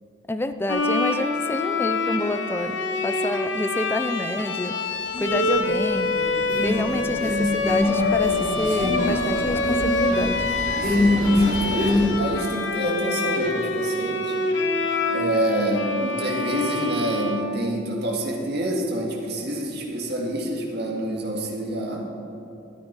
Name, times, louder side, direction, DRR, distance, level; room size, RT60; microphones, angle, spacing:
voice 1, 0.3-4.8 5.2-6.2 6.6-10.5, left 1 dB, 10° left, 9 dB, 0.4 m, -28 dB
Bowed string instrument, 0.7-18.1, left 3 dB, 70° left, 0.9 m, -26 dB
sound 1, 5.1-5.7 6.0-12.0, left 1 dB, 45° left, 3.0 m, -24 dB
voice 2, 10.8-14.4 15.1-22.1, right 1 dB, 55° right, -1 dB, 1.9 m, -27 dB
12.5 x 9.1 x 4.7 m, 2.9 s
head